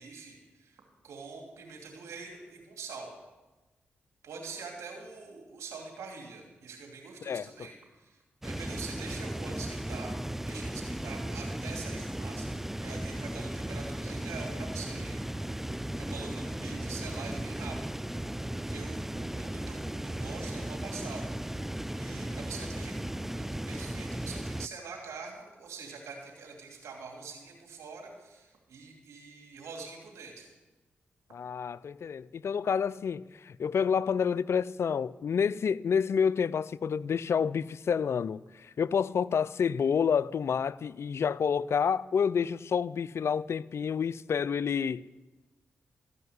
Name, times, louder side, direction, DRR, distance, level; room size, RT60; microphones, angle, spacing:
voice 1, 0.0-3.1 4.2-10.2 10.5-12.5 12.8-15.2 15.7-17.8 18.6-21.3 21.9-30.5, right 4 dB, 85° right, 2.7 m, -44 dB
voice 2, 7.2-7.7 31.3-45.1, left 6 dB, 65° left, 0.4 m, -29 dB
sound 1, 8.4-24.7, right 1 dB, 5° right, 0.4 m, -36 dB
14.5 x 5.6 x 9.5 m
supercardioid pair, 45°, 5 cm